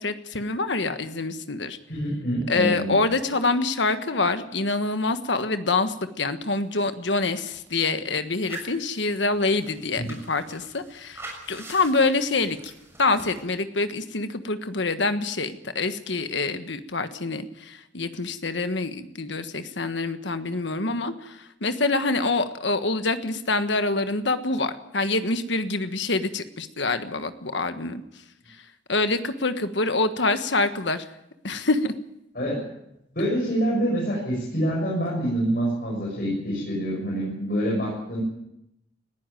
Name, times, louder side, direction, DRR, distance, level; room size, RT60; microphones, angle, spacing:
voice 1, 0.0-1.8 2.5-11.2 11.5-12.7 13.0-28.0 28.9-31.0 31.4-31.9, left 3 dB, 65° left, 9 dB, 1.5 m, -26 dB
voice 2, 1.9-3.0 10.0-10.1 32.4-32.6 33.1-38.2, right 1 dB, 50° left, -3 dB, 7.3 m, -26 dB
sound 1, 6.6-6.7 6.9-7.8 8.3-13.4, right 2 dB, 15° right, 6.6 m, -44 dB
19.5 x 15.0 x 9.2 m, 0.84 s
head